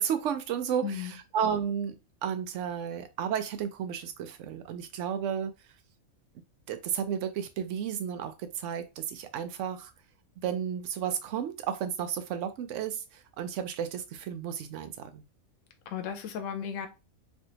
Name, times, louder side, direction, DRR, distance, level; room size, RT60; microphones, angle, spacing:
voice 1, 0.0-5.5 6.7-9.9 10.4-15.2, right 8 dB, 70° right, 0.9 m, -33 dB
voice 2, 0.8-1.1 15.9-16.9, left 8 dB, 75° left, 1.0 m, -35 dB
3.2 x 2.6 x 2.7 m
omnidirectional pair, 1.4 m